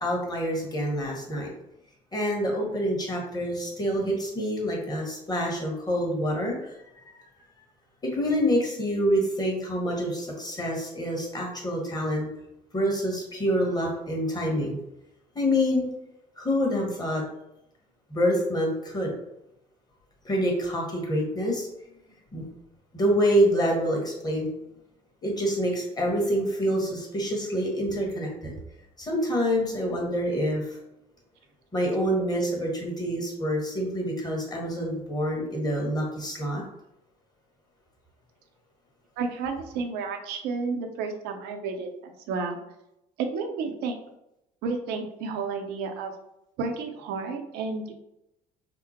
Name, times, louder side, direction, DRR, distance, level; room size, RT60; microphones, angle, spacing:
voice 1, 0.0-1.5 2.1-6.7 7.1-7.2 8.0-12.3 12.7-14.8 15.3-15.9 16.4-17.2 18.1-19.1 20.2-21.7 22.3-22.4 22.9-24.5 25.2-28.5 29.0-30.8 31.7-36.6, equal, 20° left, -1 dB, 1.5 m, -26 dB
voice 2, 39.2-42.6 43.2-43.9 44.6-46.1 46.6-48.0, right 4 dB, 55° right, 4 dB, 0.7 m, -31 dB
5.1 x 2.1 x 2.9 m, 0.85 s
figure-of-eight pair, 55°, 20 cm